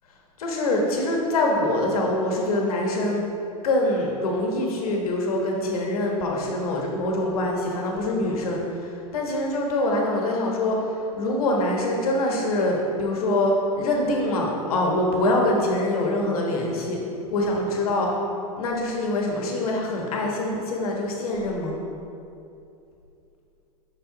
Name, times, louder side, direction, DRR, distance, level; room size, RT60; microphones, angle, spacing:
voice 1, 0.4-3.2 3.6-17.0 17.3-18.1 18.6-21.8, left 1 dB, 70° left, 0 dB, 1.4 m, -24 dB
5.9 x 5.3 x 4.0 m, 2.7 s
hypercardioid pair, 115°, 19 cm